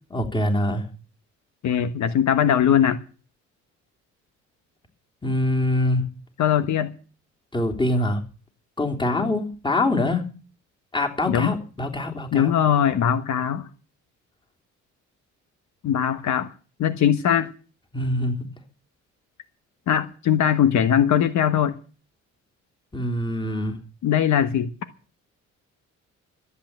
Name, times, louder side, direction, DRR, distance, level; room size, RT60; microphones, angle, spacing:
voice 1, 0.1-0.9 5.2-6.0 7.5-8.2 8.8-10.3 10.9-12.5 17.9-18.5 22.9-23.8, left 1 dB, 15° left, 3.3 m, -24 dB
voice 2, 1.6-3.0 6.4-6.9 9.2-9.3 11.3-11.6 12.3-13.7 15.8-16.5 16.8-17.5 19.9-21.8 24.0-24.7, left 9 dB, 70° left, 1.3 m, -20 dB
13.5 x 8.5 x 8.9 m
cardioid pair, 90°, 30 cm